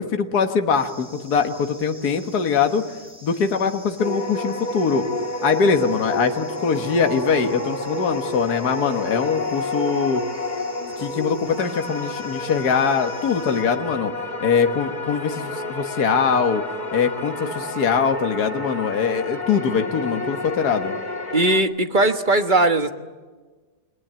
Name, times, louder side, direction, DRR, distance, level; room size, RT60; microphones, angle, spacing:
voice 1, 0.0-2.9 3.2-5.0 5.4-10.2 11.0-14.1 14.4-16.6 16.9-20.9, left 6 dB, 70° left, 5 dB, 2.0 m, -22 dB
sound 1, 0.7-13.6, equal, 5° right, 7.7 m, -47 dB
sound 2, 4.0-21.6, left 1 dB, 25° left, 2.0 m, -30 dB
voice 2, 21.3-22.9, right 2 dB, 30° right, 7 dB, 1.5 m, -19 dB
29.5 x 21.0 x 8.9 m, 1.3 s
omnidirectional pair, 1.8 m